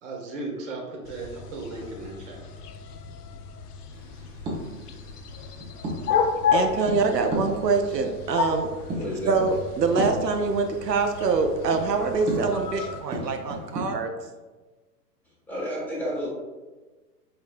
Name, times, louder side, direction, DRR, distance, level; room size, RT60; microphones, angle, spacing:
voice 1, 0.0-2.4, right 3 dB, 45° right, 0 dB, 1.2 m, -36 dB
sound 1, 1.0-13.0, left 6 dB, 70° left, 0.6 m, -32 dB
sound 2, 3.9-13.8, right 1 dB, 15° right, 0.6 m, -36 dB
voice 2, 6.5-8.7 9.3-14.1, right 4 dB, 85° right, 4 dB, 0.6 m, -24 dB
voice 3, 8.9-9.3 15.5-16.3, equal, 5° left, -8 dB, 1.3 m, -31 dB
4.2 x 3.8 x 2.4 m, 1.3 s
figure-of-eight pair, 110°, 48 cm